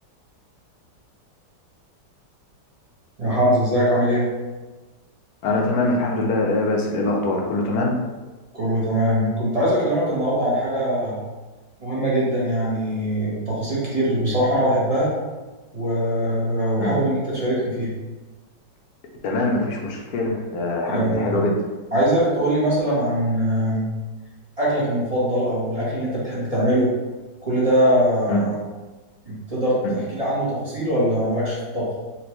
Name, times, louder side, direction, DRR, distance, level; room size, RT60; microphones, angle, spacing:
voice 1, 3.2-4.3 8.5-11.2 11.8-15.1 15.7-17.9 20.9-21.3 21.9-23.9 24.6-26.9 27.4-28.6 29.2-31.9, equal, 30° right, -8 dB, 0.8 m, -22 dB
voice 2, 5.4-7.9 16.8-16.9 19.2-21.6 28.3-28.4 29.8-29.9, left 2 dB, 65° left, 0 dB, 1.1 m, -23 dB
4.3 x 2.5 x 3.0 m, 1.2 s
omnidirectional pair, 1.9 m